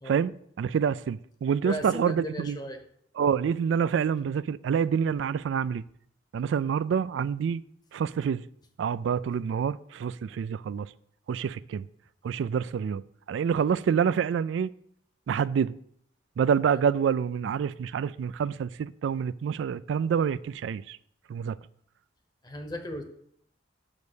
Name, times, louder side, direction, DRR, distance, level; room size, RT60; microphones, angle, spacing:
voice 1, 0.1-2.6 3.2-5.8 6.3-7.6 7.9-8.4 8.8-10.9 11.3-11.9 12.2-13.0 13.3-14.7 15.3-15.8 16.4-21.0 21.3-21.6, right 7 dB, 80° right, 0.3 m, -27 dB
voice 2, 1.6-2.8 16.7-16.8 22.4-23.0, left 1 dB, 20° left, 0.9 m, -36 dB
6.5 x 5.3 x 6.2 m
head